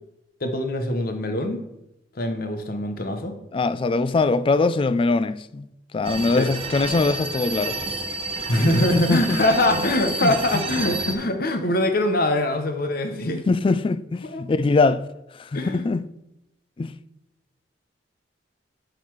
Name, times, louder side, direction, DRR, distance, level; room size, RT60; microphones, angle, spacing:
voice 1, 0.4-1.6 2.1-3.4 6.3-6.5 8.5-13.4 14.2-14.4 15.5-15.8, left 1 dB, 55° left, 1.0 m, -23 dB
voice 2, 3.5-5.7 5.9-7.8 8.9-9.4 10.2-10.3 13.3-15.0 15.3-16.0 16.8-16.9, left 3 dB, 30° left, 0.3 m, -22 dB
sound 1, 6.0-11.1, right 3 dB, 30° right, 1.1 m, -30 dB
11.5 x 4.1 x 4.7 m
head